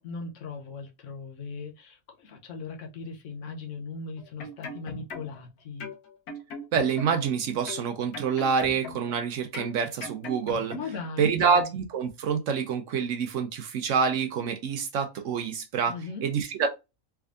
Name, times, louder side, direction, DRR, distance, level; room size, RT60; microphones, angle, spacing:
voice 1, 0.0-5.9 10.7-11.7 15.9-16.3, left 4 dB, 65° left, 1.0 m, -38 dB
sound 1, 4.2-5.5 5.8-7.3 7.7-9.2 9.5-11.1 11.4-11.6, left 2 dB, 90° left, 1.3 m, -40 dB
voice 2, 6.7-10.7 11.2-16.7, right 6 dB, 70° right, 0.8 m, -27 dB
3.4 x 3.3 x 2.4 m
omnidirectional pair, 1.5 m